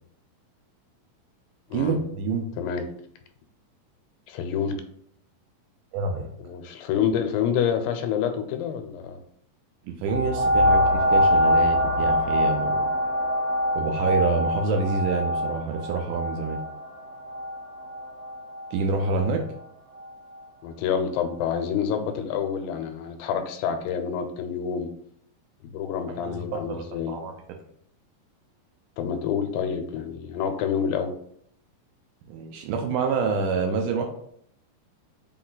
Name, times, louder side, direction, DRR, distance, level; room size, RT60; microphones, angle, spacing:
voice 1, 1.7-2.5 5.9-6.3 9.8-12.9 13.8-16.6 18.7-19.4 26.1-27.3 32.3-34.1, right 4 dB, 80° right, 3 dB, 1.9 m, -27 dB
voice 2, 2.6-2.9 4.3-4.8 6.4-9.2 20.6-24.9 25.6-27.2 29.0-31.1, left 7 dB, 85° left, 7 dB, 2.4 m, -27 dB
sound 1, 10.1-19.3 20.0-20.1, equal, 65° right, 1.8 m, -24 dB
5.4 x 2.3 x 3.8 m, 0.68 s
omnidirectional pair, 4.0 m